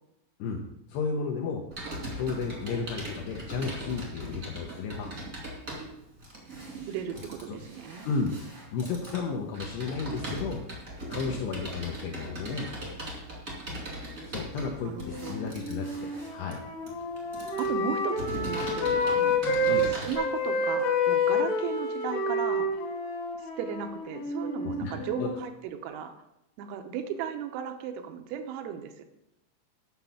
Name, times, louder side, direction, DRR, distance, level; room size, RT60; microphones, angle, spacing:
voice 1, 0.9-1.6 2.2-5.2 7.5-7.6 8.0-8.3 8.7-10.6 11.1-12.7 14.3-16.6 19.6-19.9 24.6-25.3, left 4 dB, 80° left, 1 dB, 2.5 m, -33 dB
Computer keyboard, 1.7-20.2, right 1 dB, 35° right, 1.2 m, -39 dB
voice 2, 6.9-8.1 14.8-15.5 17.6-22.7 23.6-26.1 26.6-29.1, right 8 dB, 90° right, 7 dB, 3.6 m, -36 dB
Wind instrument woodwind instrument, 14.9-19.8 20.1-25.4, left 2 dB, 60° left, 3.7 m, -29 dB
9.4 x 5.9 x 7.1 m, 0.85 s
omnidirectional pair, 5.9 m